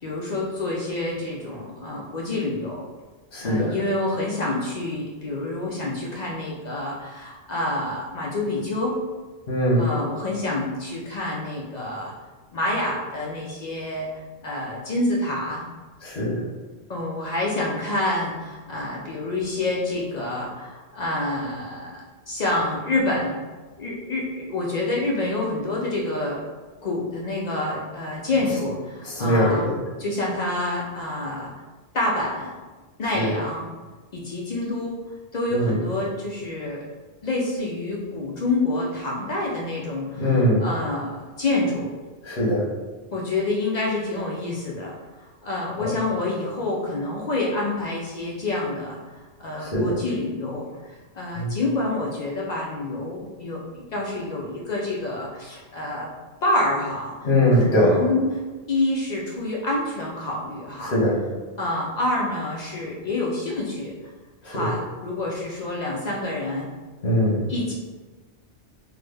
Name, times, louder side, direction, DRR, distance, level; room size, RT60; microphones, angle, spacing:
voice 1, 0.0-2.8 3.4-9.0 9.8-12.1 12.5-15.6 16.9-23.4 23.8-26.4 26.8-29.7 30.0-31.5 31.9-32.5 33.0-33.7 34.1-35.0 35.3-36.8 37.2-41.9 43.1-44.9 45.2-56.1 56.4-57.2 57.5-58.4 58.7-61.0 61.6-63.9 64.5-66.7 67.5-67.7, left 2 dB, 55° left, -3 dB, 0.5 m, -27 dB
voice 2, 3.3-3.7 9.5-9.9 16.0-16.4 29.2-29.8 33.1-33.3 35.5-35.8 40.2-40.6 42.2-42.6 49.6-49.9 51.4-51.5 57.2-57.9 60.8-61.2 64.4-64.7 67.0-67.4, equal, 80° left, -4 dB, 1.3 m, -21 dB
3.3 x 2.0 x 3.3 m, 1.3 s
omnidirectional pair, 1.1 m